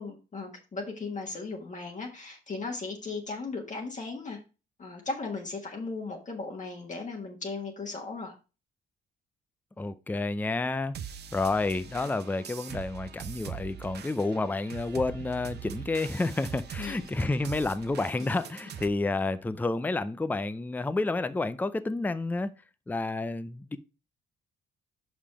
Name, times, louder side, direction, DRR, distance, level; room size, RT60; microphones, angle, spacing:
voice 1, 0.0-4.4 4.8-8.3 16.8-17.1, left 3 dB, 40° left, 1.5 m, -37 dB
voice 2, 9.8-10.9 11.3-22.5 22.9-23.8, left 3 dB, 10° left, 0.5 m, -30 dB
sound 1, 10.9-18.9, right 8 dB, 55° right, 0.8 m, -42 dB
5.5 x 5.1 x 4.9 m
cardioid pair, 90°, 20 cm